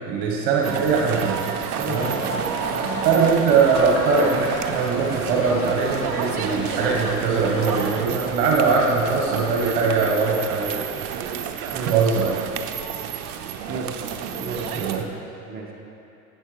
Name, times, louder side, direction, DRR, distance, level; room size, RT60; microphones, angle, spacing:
voice 1, 0.0-1.5 1.8-2.2 3.0-10.8 11.6-12.3 14.8-15.1, right 4 dB, 55° right, -2 dB, 1.5 m, -21 dB
sound 1, 0.6-15.1, right 8 dB, 70° right, 0.7 m, -30 dB
voice 2, 1.7-3.1 11.7-11.9 13.7-15.7, right 3 dB, 20° right, -3 dB, 1.8 m, -33 dB
sound 2, 1.9-7.9, left 1 dB, 30° left, 1.7 m, -33 dB
10.5 x 8.4 x 3.4 m, 2.8 s
hypercardioid pair, 75°, 46 cm